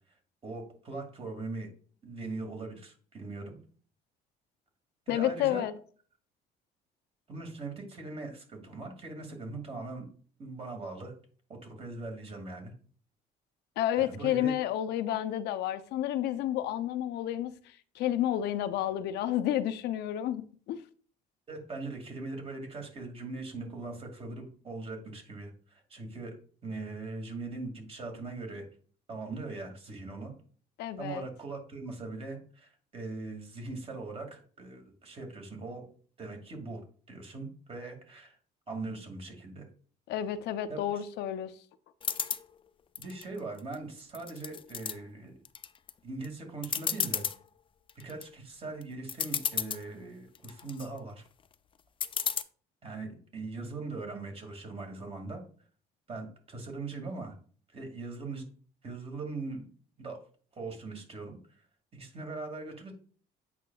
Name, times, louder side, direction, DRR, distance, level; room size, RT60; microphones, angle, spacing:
voice 1, 0.4-1.7 2.0-3.6 5.1-5.7 7.3-10.1 10.4-11.1 11.5-12.7 14.0-14.5 21.5-26.4 26.6-28.6 29.1-30.3 31.0-35.8 36.2-36.8 37.1-38.4 38.7-39.7 40.7-41.0 43.0-45.3 46.0-47.2 48.0-51.2 52.8-55.4 56.1-57.4 57.7-58.5 58.8-59.6 60.0-60.2 60.5-61.4 61.9-62.9, right 3 dB, 35° right, 2.2 m, -40 dB
voice 2, 5.1-5.7 13.8-20.8 30.8-31.3 40.1-41.5, left 12 dB, 80° left, 0.6 m, -31 dB
sound 1, 42.0-42.4 43.0-43.7 44.1-44.9 45.5-45.9 46.2-46.3 46.6-47.4 47.9-48.2 48.8-48.9 49.1-49.8 50.4-50.9 52.0-52.4, left 7 dB, 30° left, 0.4 m, -32 dB
8.4 x 5.8 x 2.3 m
cardioid pair, 110°, 17 cm